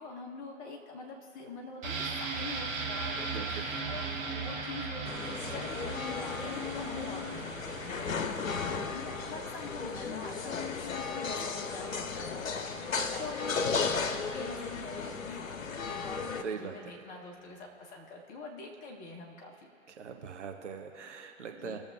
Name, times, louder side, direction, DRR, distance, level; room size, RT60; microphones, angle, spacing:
voice 1, 0.0-19.7 21.6-21.8, left 3 dB, 20° left, 1 dB, 1.2 m, -45 dB
sound 1, 1.8-11.5 11.8-11.9, right 4 dB, 20° right, 1.7 m, -39 dB
voice 2, 3.2-3.7 16.4-16.8 19.9-21.8, right 6 dB, 65° right, 4 dB, 1.4 m, -41 dB
sound 2, 5.1-16.4, left 5 dB, 85° left, 0.7 m, -35 dB
20.0 x 7.0 x 2.8 m, 2.7 s
figure-of-eight pair, 130°, 39 cm